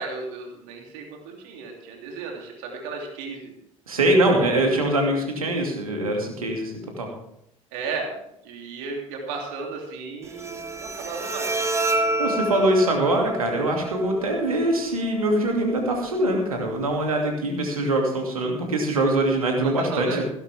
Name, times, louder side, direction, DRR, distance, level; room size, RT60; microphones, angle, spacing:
voice 1, 0.0-3.5 4.3-4.5 7.7-8.1 8.4-11.6 19.6-20.2, right 4 dB, 65° right, 1 dB, 3.0 m, -34 dB
voice 2, 3.9-7.1 12.2-20.2, right 1 dB, 85° right, 2 dB, 2.6 m, -23 dB
Bowed string instrument, 10.2-17.2, right 1 dB, 15° right, 1.6 m, -30 dB
16.5 x 11.5 x 3.5 m, 0.78 s
figure-of-eight pair, 60°, 18 cm